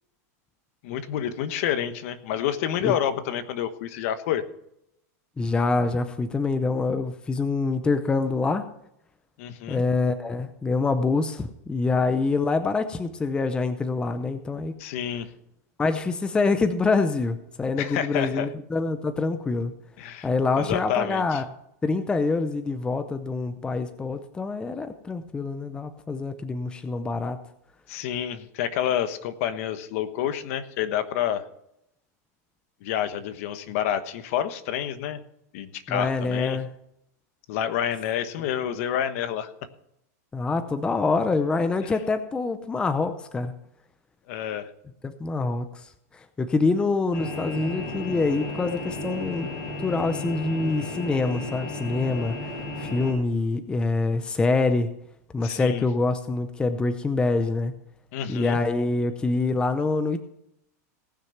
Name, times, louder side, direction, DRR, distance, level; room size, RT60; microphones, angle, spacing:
voice 1, 0.8-4.4 9.4-9.8 14.8-15.3 17.8-18.5 20.0-20.3 20.6-21.4 27.9-31.4 32.8-35.2 35.5-36.6 37.5-39.5 41.8-41.9 44.3-44.7 55.4-55.8 58.1-58.6, left 10 dB, 55° left, 11 dB, 1.2 m, -28 dB
voice 2, 5.4-8.7 9.7-14.8 15.8-19.7 20.2-21.4 21.8-27.4 35.9-36.7 40.3-43.5 45.0-45.8 46.1-49.5 49.8-52.4 52.8-54.9 55.3-57.7 58.3-60.2, left 3 dB, 10° left, 9 dB, 0.6 m, -25 dB
sound 1, 47.1-53.1, left 2 dB, 35° left, 5.6 m, -34 dB
18.0 x 6.4 x 5.9 m, 0.79 s
supercardioid pair, 150°, 9 cm